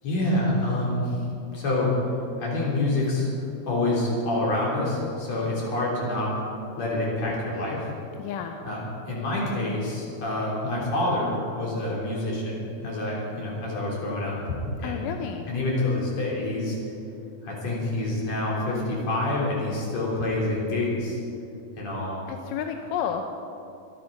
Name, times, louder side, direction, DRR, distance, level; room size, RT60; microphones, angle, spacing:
voice 1, 0.0-1.2 1.5-1.9 2.4-3.3 3.7-6.4 6.8-7.9 8.6-8.8 9.1-15.0 15.5-16.8 17.4-21.2 21.8-22.2, left 2 dB, 45° left, -4 dB, 4.4 m, -27 dB
voice 2, 8.2-8.6 14.8-15.5 22.3-23.2, left 8 dB, 80° left, 5 dB, 2.1 m, -31 dB
23.5 x 9.5 x 5.3 m, 2.7 s
omnidirectional pair, 4.3 m